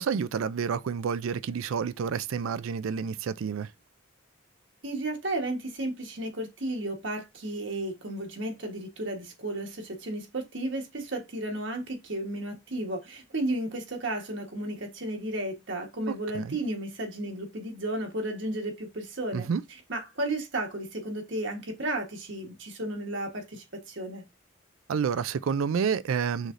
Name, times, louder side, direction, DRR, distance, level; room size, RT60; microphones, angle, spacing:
voice 1, 0.0-3.7 16.3-16.6 19.3-19.6 24.9-26.5, right 6 dB, 85° right, 0.4 m, -29 dB
voice 2, 4.8-19.5 19.9-24.2, right 1 dB, 65° right, 1.3 m, -33 dB
6.4 x 3.2 x 2.5 m
head